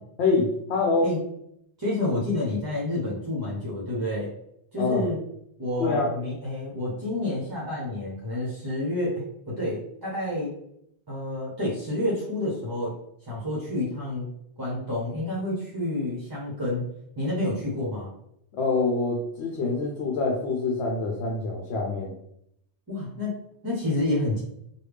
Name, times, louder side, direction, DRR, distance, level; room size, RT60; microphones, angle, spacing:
voice 1, 0.2-1.1 4.8-5.0 5.8-6.1 18.5-22.1, left 3 dB, 70° left, 0 dB, 0.8 m, -25 dB
voice 2, 1.8-4.3 4.7-5.2 5.6-10.5 11.1-12.9 13.3-14.3 14.6-16.9 17.2-18.1 22.9-24.4, left 1 dB, 25° right, -6 dB, 0.7 m, -29 dB
3.3 x 2.3 x 3.3 m, 0.75 s
omnidirectional pair, 1.1 m